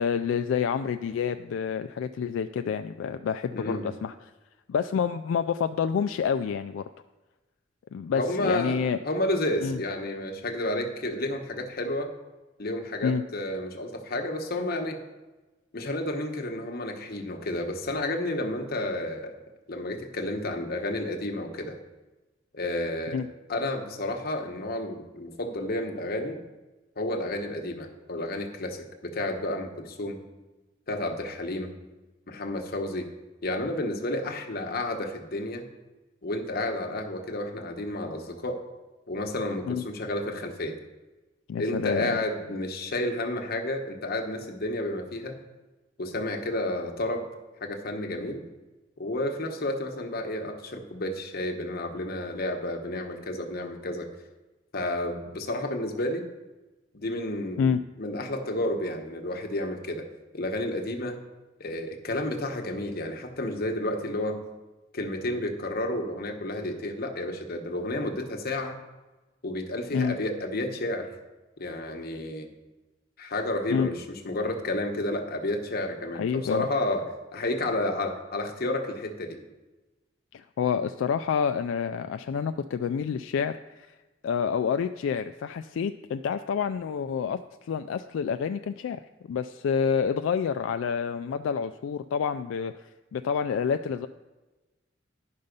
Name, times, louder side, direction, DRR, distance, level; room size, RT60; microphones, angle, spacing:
voice 1, 0.0-4.1 4.7-6.8 7.9-9.0 9.6-9.8 13.0-13.2 23.1-23.3 39.7-39.8 41.5-42.1 57.6-57.8 69.9-70.1 73.7-73.9 76.2-76.6 80.3-83.9 84.2-89.0 89.3-92.7 93.1-94.1, left 6 dB, 80° left, 9 dB, 0.3 m, -28 dB
voice 2, 3.5-3.9 8.1-8.8 9.0-12.1 12.6-15.0 15.7-19.4 19.7-21.8 22.5-23.2 23.5-26.4 27.0-30.2 30.9-31.7 32.3-33.1 33.4-35.7 36.2-38.6 39.1-40.8 41.6-45.4 46.0-47.3 47.6-48.4 49.0-54.1 54.7-56.3 56.9-57.7 58.0-60.0 60.3-61.2 61.6-64.4 64.9-68.8 69.4-71.1 71.6-72.5 73.2-79.4, left 1 dB, 55° left, 4 dB, 1.1 m, -31 dB
10.5 x 5.5 x 5.2 m, 1.1 s
head